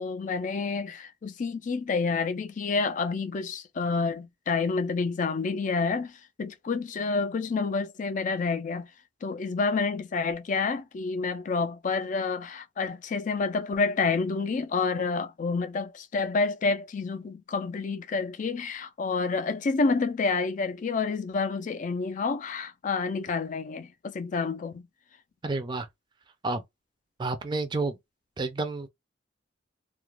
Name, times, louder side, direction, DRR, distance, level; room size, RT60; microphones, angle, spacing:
voice 1, 0.0-8.9 9.2-24.9, left 4 dB, 40° left, 0.4 m, -29 dB
voice 2, 25.4-25.9 26.4-26.6 27.2-28.0 28.4-28.9, right 3 dB, 25° right, 0.4 m, -30 dB
2.3 x 2.0 x 3.0 m
head